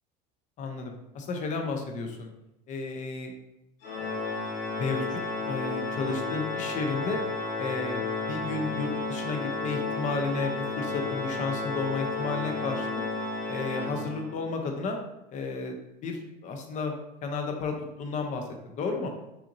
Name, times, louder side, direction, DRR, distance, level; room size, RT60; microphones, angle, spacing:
voice 1, 0.6-2.3 2.7-3.3 4.7-5.2 5.4-7.2 7.6-13.0 13.5-15.0 15.3-16.9 17.2-19.1, left 4 dB, 35° left, 4 dB, 0.7 m, -33 dB
Organ, 3.8-14.5, left 3 dB, 80° left, 1.0 m, -32 dB
5.7 x 2.7 x 2.6 m, 0.88 s
cardioid pair, 145°, 21 cm